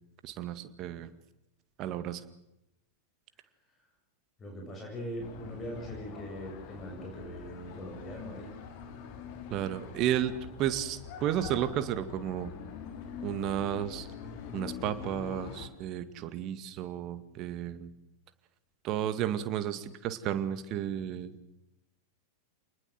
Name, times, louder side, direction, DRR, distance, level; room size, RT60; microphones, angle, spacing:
voice 1, 0.2-1.1 1.8-2.2 9.5-10.3 10.6-12.5 13.2-14.1 14.5-17.9 18.8-21.4, right 11 dB, 35° right, 12 dB, 2.0 m, -32 dB
voice 2, 4.4-8.5, equal, 20° left, 1 dB, 7.3 m, -41 dB
sound 1, 5.2-15.7, left 7 dB, 45° left, 3.9 m, -44 dB
28.0 x 20.5 x 7.8 m, 0.85 s
figure-of-eight pair, 90°, 0 cm